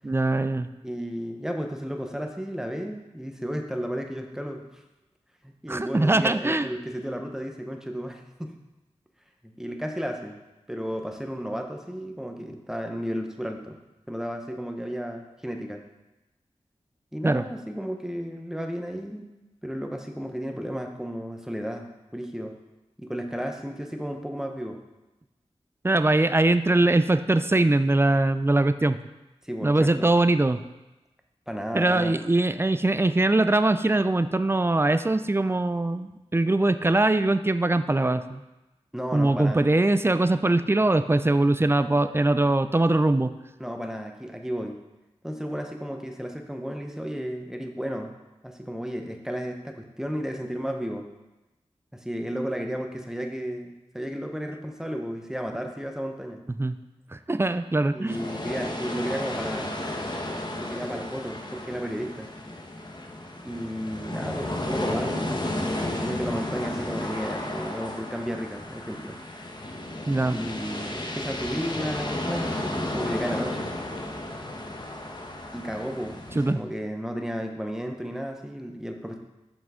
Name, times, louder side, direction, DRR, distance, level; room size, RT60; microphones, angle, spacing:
voice 1, 0.0-0.7 5.7-6.7 17.2-17.4 25.8-29.0 29.6-30.6 31.7-38.4 39.1-43.3 56.6-56.8 57.3-58.2 70.1-70.4 76.4-76.6, right 2 dB, 20° right, 12 dB, 0.4 m, -22 dB
voice 2, 0.8-4.8 5.4-8.5 9.4-10.4 10.7-13.8 14.1-15.8 17.1-19.2 19.6-22.5 23.0-24.8 29.4-30.1 31.5-32.2 38.9-39.6 43.6-44.8 45.2-48.1 48.4-51.1 51.9-56.4 57.9-59.8 60.6-62.3 63.4-65.4 65.8-69.1 70.3-73.7 75.5-79.2, equal, 5° right, 3 dB, 0.9 m, -33 dB
sound 1, 58.1-76.5, left 1 dB, 40° left, 1.0 m, -33 dB
7.1 x 6.0 x 3.7 m, 1.0 s
wide cardioid pair, 50°, 11 cm